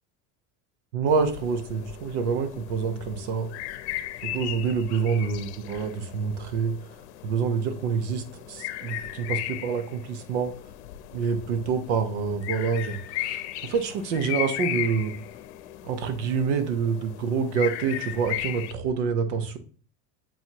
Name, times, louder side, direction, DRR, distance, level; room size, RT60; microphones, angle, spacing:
voice 1, 0.9-3.5 4.2-6.7 7.2-10.6 11.1-15.1 15.8-19.6, right 5 dB, 90° right, 9 dB, 1.0 m, -27 dB
sound 1, 1.1-18.7, left 14 dB, 75° left, 0.7 m, -37 dB
7.4 x 2.9 x 4.5 m, 0.42 s
cardioid pair, 165°, 34 cm